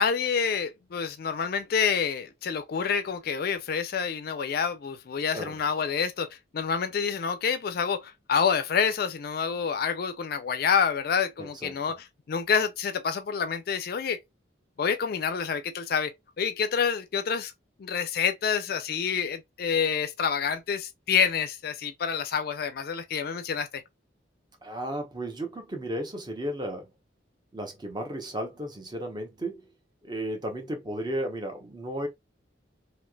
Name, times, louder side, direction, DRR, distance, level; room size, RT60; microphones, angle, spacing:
voice 1, 0.0-6.3 6.5-14.2 14.8-17.5 17.8-23.8, left 6 dB, 50° left, 0.4 m, -28 dB
voice 2, 11.4-11.8 24.6-26.9 27.5-29.6 30.0-32.1, right 1 dB, 25° right, 0.7 m, -34 dB
3.1 x 2.7 x 2.2 m
head